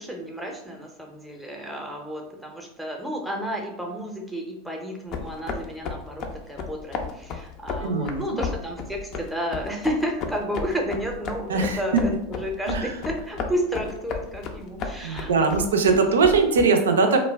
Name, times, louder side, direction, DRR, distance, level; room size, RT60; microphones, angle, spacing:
voice 1, 0.0-15.7, equal, ahead, 1 dB, 0.6 m, -31 dB
sound 1, 5.1-16.7, left 5 dB, 45° left, 0.4 m, -34 dB
voice 2, 7.8-8.4 11.5-12.0 12.7-12.9 15.0-17.2, right 4 dB, 85° right, 5 dB, 0.4 m, -21 dB
2.2 x 2.1 x 3.3 m, 0.80 s
hypercardioid pair, 100°, 0 cm